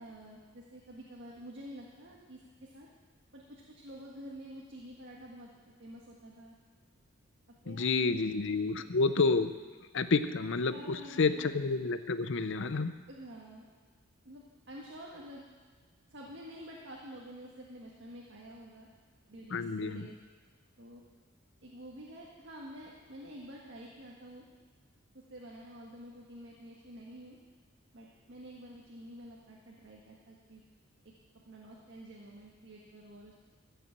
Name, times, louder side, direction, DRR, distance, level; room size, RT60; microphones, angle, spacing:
voice 1, 0.0-2.9 3.3-6.6 7.6-8.2 10.7-11.5 13.1-13.7 14.2-15.4 16.1-18.9 19.3-20.1 20.8-21.0 21.6-24.4 25.1-27.4 27.9-30.6 31.3-33.4, equal, 55° right, -3 dB, 1.6 m, -49 dB
voice 2, 7.7-9.5 9.9-12.9 19.5-20.1, left 4 dB, 60° left, 12 dB, 0.6 m, -29 dB
15.0 x 6.9 x 7.5 m, 1.5 s
head